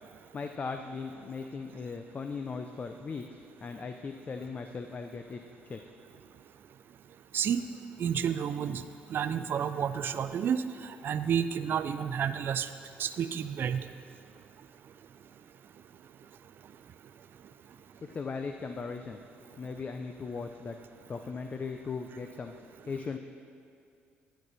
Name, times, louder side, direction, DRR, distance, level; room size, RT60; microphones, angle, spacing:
voice 1, 0.3-3.2 3.6-5.4 5.7-5.8 18.0-19.2 19.6-20.8 21.1-22.5 22.9-23.2, left 4 dB, 35° left, 6 dB, 0.5 m, -38 dB
voice 2, 8.0-8.8 9.1-12.7 13.0-13.8, right 8 dB, 55° right, 11 dB, 0.4 m, -30 dB
10.5 x 9.2 x 4.1 m, 2.5 s
cardioid pair, 85°, 4 cm